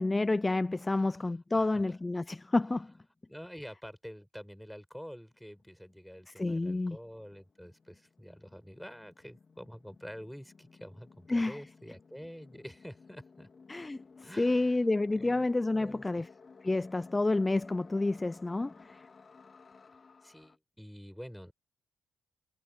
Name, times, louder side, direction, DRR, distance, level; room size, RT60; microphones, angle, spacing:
voice 1, 0.0-2.9 6.4-7.0 11.3-11.6 13.7-16.3 16.6-19.0, left 2 dB, 15° left, 0.5 m, -29 dB
voice 2, 0.9-1.8 3.3-13.5 14.2-14.8 15.1-16.3 20.2-21.5, equal, ahead, 5.2 m, -48 dB
sound 1, 5.3-20.6, left 4 dB, 35° left, 3.6 m, -57 dB
cardioid pair, 90°, 0 cm